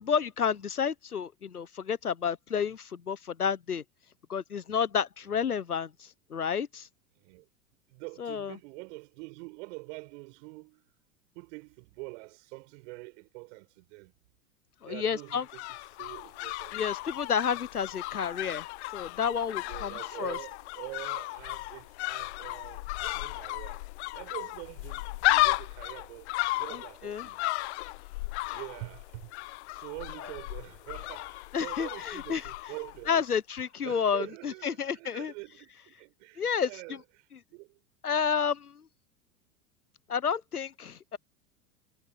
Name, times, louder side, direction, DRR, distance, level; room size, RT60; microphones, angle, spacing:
voice 1, 0.0-3.8 4.3-6.9 8.2-8.6 14.8-15.4 16.7-18.7 18.9-20.4 26.7-27.3 30.2-30.3 31.5-32.4 33.1-35.3 36.4-37.0 38.0-38.9 40.1-41.2, left 7 dB, 90° left, 1.2 m, -31 dB
voice 2, 7.1-7.5 7.9-10.9 11.3-14.1 14.8-16.8 19.6-23.9 24.1-27.5 28.5-29.3 29.7-33.2 33.8-37.8, right 28 dB, 55° right, 7.9 m, -45 dB
sound 1, 15.1-33.3 33.5-33.6, left 21 dB, 50° left, 0.6 m, -34 dB
figure-of-eight pair, 90°, 43 cm